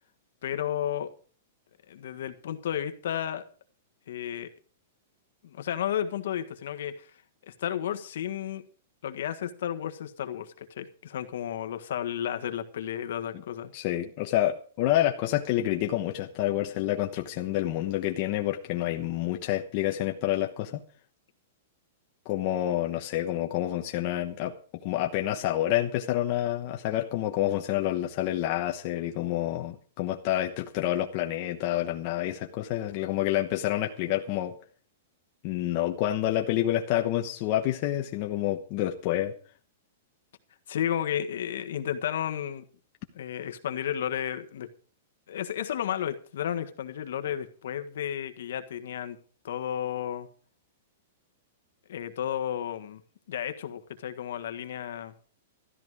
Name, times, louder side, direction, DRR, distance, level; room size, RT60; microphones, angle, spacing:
voice 1, 0.4-1.1 1.9-3.4 4.1-4.5 5.4-7.1 7.5-8.6 9.0-13.7 40.7-42.6 43.1-44.7 45.3-49.2 49.4-50.3 51.9-53.0 53.3-55.1, left 10 dB, 60° left, 1.5 m, -32 dB
voice 2, 13.7-20.8 22.2-24.5 24.8-34.5 35.4-39.3, left 13 dB, 30° left, 1.0 m, -28 dB
13.5 x 12.5 x 4.9 m
supercardioid pair, 180°, 0 cm